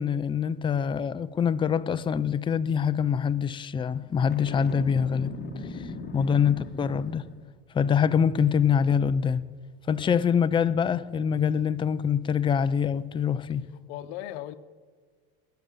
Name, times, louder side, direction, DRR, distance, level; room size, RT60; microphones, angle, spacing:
voice 1, 0.0-5.4 5.7-5.9 6.1-7.3 7.7-9.4 9.9-13.7, left 7 dB, 15° left, 0.4 m, -25 dB
Boom, 4.3-7.5, left 3 dB, 35° left, 1.6 m, -39 dB
voice 2, 13.9-14.6, left 13 dB, 75° left, 0.8 m, -38 dB
19.0 x 6.8 x 7.2 m
supercardioid pair, 105°, 30 cm